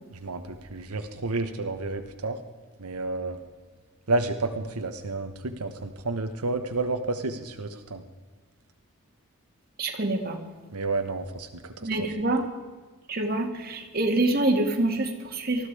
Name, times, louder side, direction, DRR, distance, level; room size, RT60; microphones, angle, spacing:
voice 1, 0.1-2.4 2.8-3.4 4.1-8.0 10.7-12.1, right 2 dB, 85° right, 6 dB, 1.2 m, -30 dB
voice 2, 9.8-10.4 11.8-12.4 13.1-15.7, right 2 dB, 40° right, 2 dB, 2.3 m, -26 dB
20.0 x 14.0 x 4.9 m, 1.4 s
head